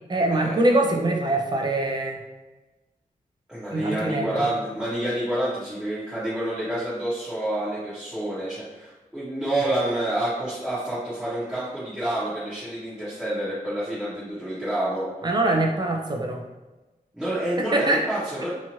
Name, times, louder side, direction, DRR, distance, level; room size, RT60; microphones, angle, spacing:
voice 1, 0.1-2.2 3.7-4.3 15.2-16.4 17.6-18.0, right 2 dB, 30° right, 1 dB, 0.3 m, -23 dB
voice 2, 3.5-15.1 17.1-18.5, right 1 dB, 5° right, -12 dB, 0.8 m, -28 dB
2.9 x 2.4 x 2.6 m, 1.1 s
wide cardioid pair, 150°, 15 cm